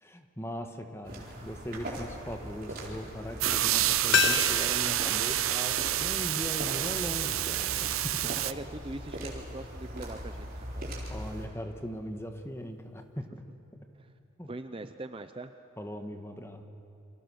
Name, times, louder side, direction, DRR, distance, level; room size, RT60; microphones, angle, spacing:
voice 1, 0.0-7.9 8.3-8.4 11.1-13.4 14.4-14.5 15.8-16.6, equal, 10° left, 6 dB, 1.5 m, -39 dB
sound 1, 1.0-11.5, right 1 dB, 45° right, 4.4 m, -41 dB
sound 2, 3.4-8.5, right 13 dB, 85° right, 0.7 m, -28 dB
sound 3, 4.1-6.9 7.2-7.3, left 9 dB, 55° left, 0.5 m, -32 dB
voice 2, 8.2-11.0 14.0-14.1 14.5-15.5, right 2 dB, 25° right, 9 dB, 0.6 m, -42 dB
29.5 x 25.0 x 6.4 m, 2.9 s
head